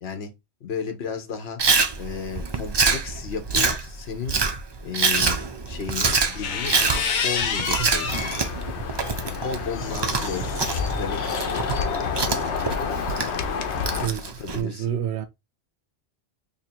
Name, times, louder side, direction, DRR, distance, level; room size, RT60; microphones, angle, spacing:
voice 1, 0.0-0.3 0.6-1.6 2.0-4.4 4.8-8.2 9.4-10.6 10.9-11.8 12.2-12.6 13.9-14.9, left 6 dB, 70° left, 1.1 m, -34 dB
Chewing mastication, 1.6-14.6, right 4 dB, 40° right, 0.4 m, -26 dB
sound 1, 6.3-8.5 9.0-11.8, left 6 dB, 55° left, 0.6 m, -30 dB
voice 2, 7.8-8.2 14.0-15.3, right 10 dB, 80° right, 0.9 m, -29 dB
sound 2, 8.1-14.1, left 6 dB, 90° left, 0.9 m, -29 dB
2.9 x 2.7 x 4.2 m
omnidirectional pair, 1.1 m